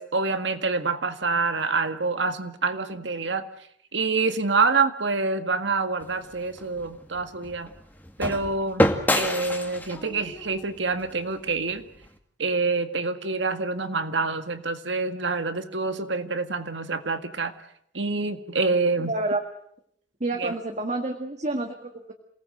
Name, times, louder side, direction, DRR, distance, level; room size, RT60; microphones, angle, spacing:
voice 1, 0.0-3.5 3.9-7.7 8.2-8.9 9.1-11.8 12.4-17.5 17.9-19.1 20.3-20.5, right 4 dB, 80° right, 9 dB, 1.9 m, -26 dB
sound 1, 6.0-12.1, left 1 dB, 10° left, 2.1 m, -29 dB
voice 2, 19.0-19.4 20.2-22.1, right 2 dB, 40° right, 4 dB, 1.9 m, -29 dB
27.5 x 19.0 x 7.9 m, 0.70 s
head